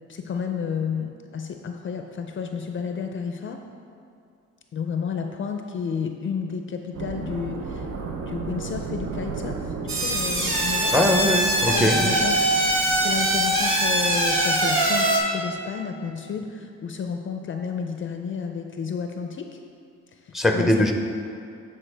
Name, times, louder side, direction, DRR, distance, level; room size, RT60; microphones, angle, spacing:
voice 1, 0.1-3.6 4.7-7.9 8.3-10.9 11.5-19.5 20.3-20.9, left 6 dB, 40° left, 4 dB, 0.5 m, -31 dB
sound 1, 6.9-15.2, right 4 dB, 55° right, 0.7 m, -35 dB
sound 2, 9.9-15.2, right 1 dB, 40° right, 1.6 m, -22 dB
voice 2, 10.9-12.1 20.3-20.9, left 1 dB, ahead, 3 dB, 0.6 m, -21 dB
10.0 x 4.3 x 3.4 m, 2.4 s
cardioid pair, 90°, 30 cm